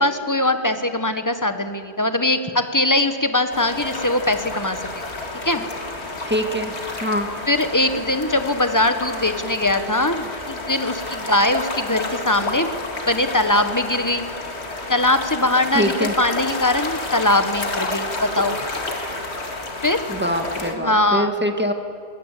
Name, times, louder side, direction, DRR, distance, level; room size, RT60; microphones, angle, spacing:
voice 1, 0.0-5.1 5.4-5.6 7.5-12.7 13.1-14.3 14.9-18.6 19.8-20.0 20.8-21.3, left 1 dB, 15° left, 8 dB, 1.1 m, -21 dB
sound 1, 3.5-20.7, left 2 dB, 70° left, 2.3 m, -30 dB
voice 2, 6.2-6.7 7.0-7.3 15.7-16.1 20.1-21.7, equal, 10° right, 5 dB, 1.6 m, -23 dB
22.0 x 17.5 x 8.4 m, 2.4 s
omnidirectional pair, 1.2 m